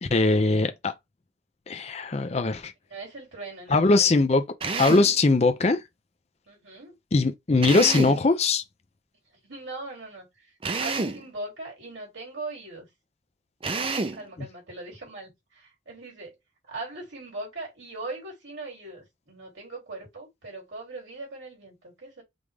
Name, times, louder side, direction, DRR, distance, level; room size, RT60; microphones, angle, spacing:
voice 1, 0.0-0.9 1.7-2.7 3.7-4.4 4.8-5.8 7.1-8.6, left 3 dB, 35° left, 0.5 m, -21 dB
voice 2, 2.9-4.1 6.5-7.0 7.5-7.7 9.4-10.5 10.8-12.9 13.7-16.4 16.7-22.2, right 2 dB, 85° right, 3.0 m, -40 dB
Drill, 4.6-5.2 7.6-8.3 10.6-11.2 13.6-14.2, right 3 dB, 30° right, 0.5 m, -28 dB
5.2 x 2.5 x 3.3 m
head